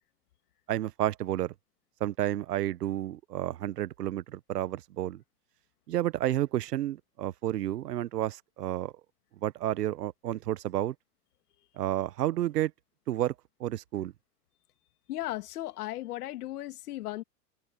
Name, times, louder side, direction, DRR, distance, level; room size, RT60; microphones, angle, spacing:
voice 1, 0.7-1.5 2.0-5.2 5.9-8.9 9.4-10.9 11.8-12.7 13.1-13.3 13.6-14.1, right 13 dB, 85° right, 1.2 m, -31 dB
voice 2, 15.1-17.2, left 15 dB, 70° left, 2.4 m, -36 dB
open air
hypercardioid pair, 130°, 46 cm